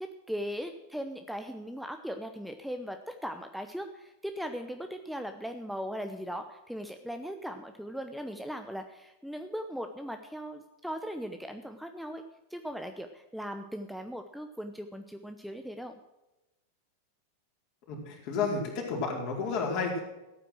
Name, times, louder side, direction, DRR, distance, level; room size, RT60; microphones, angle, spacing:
voice 1, 0.0-12.2 12.5-16.0, equal, ahead, 6 dB, 0.9 m, -39 dB
voice 2, 17.9-20.0, left 4 dB, 45° left, 0 dB, 4.4 m, -31 dB
14.5 x 9.1 x 6.3 m, 1.0 s
figure-of-eight pair, 90°, 0 cm